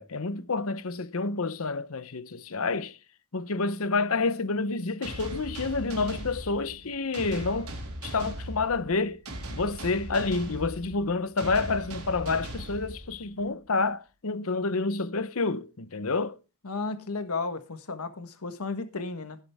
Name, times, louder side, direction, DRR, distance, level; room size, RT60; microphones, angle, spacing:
voice 1, 0.0-3.0 3.3-7.7 8.0-9.2 9.5-16.3, left 3 dB, 70° left, 0.9 m, -29 dB
sound 1, 5.0-13.5, right 1 dB, 90° right, 3.9 m, -39 dB
voice 2, 16.6-19.4, left 3 dB, 85° left, 1.4 m, -33 dB
16.5 x 7.7 x 3.6 m
head